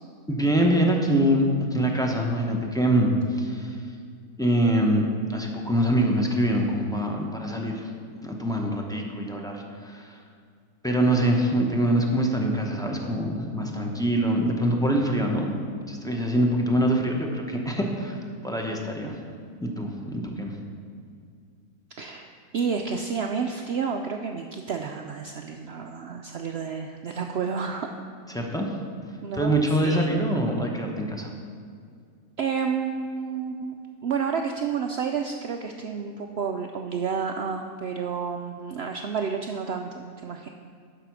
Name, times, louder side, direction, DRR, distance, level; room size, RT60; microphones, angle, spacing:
voice 1, 0.3-1.4 1.7-3.8 4.4-7.9 8.2-10.2 10.8-15.5 15.9-19.2 19.6-20.6 28.3-28.7 29.3-31.3, right 1 dB, 5° left, 0 dB, 0.6 m, -24 dB
voice 2, 22.0-27.9 29.2-30.2 32.4-33.8 34.0-40.5, right 6 dB, 80° right, 4 dB, 0.5 m, -30 dB
11.5 x 4.9 x 6.1 m, 2.2 s
omnidirectional pair, 1.6 m